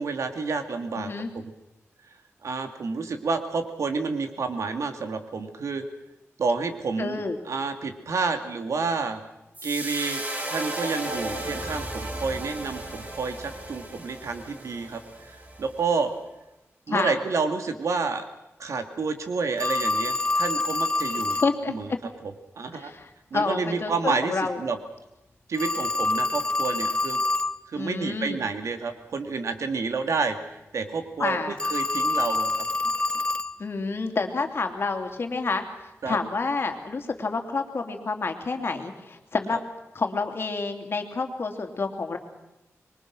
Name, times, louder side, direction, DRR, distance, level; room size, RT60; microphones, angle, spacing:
voice 1, 0.0-1.5 2.4-5.8 6.4-9.2 9.6-10.2 10.5-16.1 16.9-18.2 18.6-21.4 21.7-21.9 22.2-22.9 23.3-24.8 25.5-27.2 27.7-32.5 32.8-32.9 36.0-36.2 39.5-39.6, right 4 dB, 75° right, 6 dB, 2.6 m, -29 dB
voice 2, 1.0-1.3 7.0-7.4 16.9-17.2 21.3-21.7 22.7-24.6 27.8-28.4 31.2-31.5 33.6-35.6 36.1-39.6 39.9-42.2, left 4 dB, 50° left, 5 dB, 3.0 m, -28 dB
sound 1, 9.5-15.9, right 1 dB, 30° right, 4.4 m, -35 dB
Telephone, 19.6-21.6 25.5-27.6 31.6-33.6, left 2 dB, 20° left, 0.7 m, -26 dB
26.0 x 23.0 x 6.3 m, 0.94 s
wide cardioid pair, 120°, 5 cm